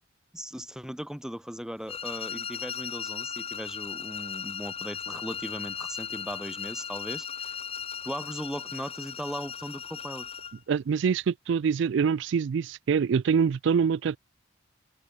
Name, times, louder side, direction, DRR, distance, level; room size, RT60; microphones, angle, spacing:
voice 1, 0.3-7.6 8.0-10.3, equal, 5° right, 1.5 m, -38 dB
sound 1, 1.9-10.6, left 7 dB, 30° left, 1.2 m, -37 dB
voice 2, 10.7-14.2, right 6 dB, 65° right, 0.3 m, -25 dB
open air
head